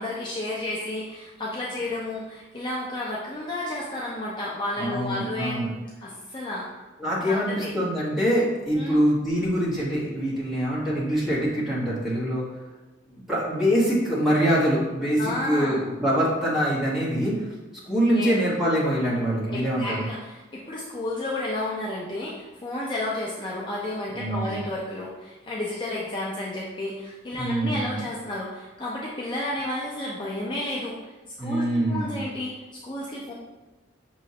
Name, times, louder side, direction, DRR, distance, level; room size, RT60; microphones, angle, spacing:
voice 1, 0.0-5.6 6.0-6.7 7.3-7.7 8.8-9.0 15.2-15.8 18.1-18.3 19.5-31.1 31.4-33.3, left 1 dB, 25° left, -5 dB, 0.5 m, -32 dB
voice 2, 4.8-5.7 7.0-12.5 13.1-17.5 17.8-20.1 24.1-24.6 27.4-28.0 31.4-32.1, equal, ahead, -8 dB, 1.2 m, -24 dB
6.1 x 3.1 x 2.8 m, 1.1 s
head